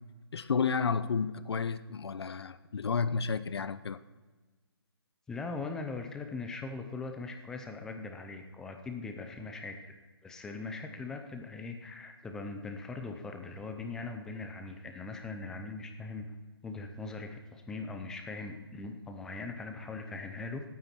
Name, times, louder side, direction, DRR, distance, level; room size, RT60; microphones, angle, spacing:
voice 1, 0.3-4.0, left 5 dB, 70° left, 0.8 m, -31 dB
voice 2, 5.3-9.9 10.2-16.3 16.6-20.6, left 3 dB, 5° left, 0.6 m, -40 dB
17.5 x 9.4 x 4.4 m
hypercardioid pair, 165°, 14 cm